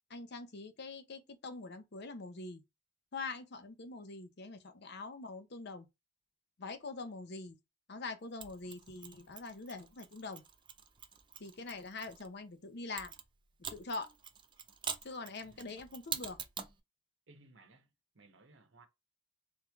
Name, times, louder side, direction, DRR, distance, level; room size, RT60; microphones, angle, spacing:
voice 1, 0.1-2.6 3.1-5.9 6.6-7.6 7.9-10.4 11.4-13.1 13.7-14.1 15.0-16.4, left 3 dB, 60° left, 0.7 m, -44 dB
Mechanisms, 8.4-12.3 13.0-16.8, right 7 dB, 25° right, 0.5 m, -45 dB
voice 2, 15.4-16.0 17.3-18.9, right 3 dB, 70° right, 1.0 m, -62 dB
3.6 x 3.2 x 3.5 m
head